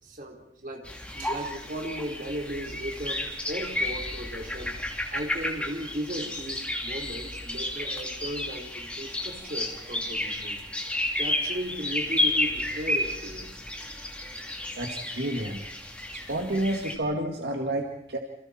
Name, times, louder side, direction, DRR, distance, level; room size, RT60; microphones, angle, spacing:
voice 1, 0.0-4.7 5.1-10.6 11.2-13.5 14.5-14.6, right 1 dB, 45° right, 1 dB, 4.2 m, -36 dB
sound 1, 0.8-17.0, left 1 dB, 5° left, 3.1 m, -32 dB
voice 2, 14.8-15.6 16.1-18.2, right 1 dB, 65° right, 2 dB, 2.1 m, -30 dB
29.5 x 28.0 x 4.4 m, 0.74 s
head